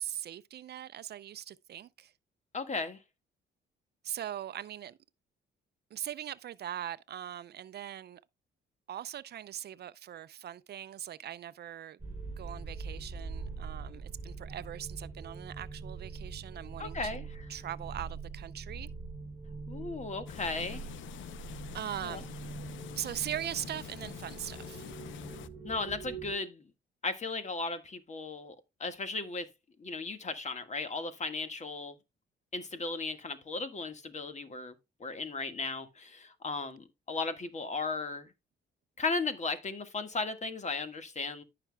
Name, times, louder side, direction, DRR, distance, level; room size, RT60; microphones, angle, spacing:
voice 1, 0.0-2.1 4.0-5.0 5.9-8.2 8.9-12.0 12.4-17.2 17.5-18.9 21.7-22.3 23.0-24.9, right 11 dB, 55° right, 0.5 m, -40 dB
voice 2, 2.5-3.0 16.8-17.2 19.7-20.9 22.0-22.2 25.6-26.7 27.0-29.5 29.8-32.0 32.5-34.7 35.0-38.3 39.0-41.4, left 3 dB, 35° left, 1.6 m, -36 dB
sound 1, 12.0-26.3, right 4 dB, 10° right, 5.3 m, -43 dB
sound 2, 20.3-25.5, left 12 dB, 75° left, 0.7 m, -46 dB
14.5 x 5.8 x 2.2 m
cardioid pair, 90°, 20 cm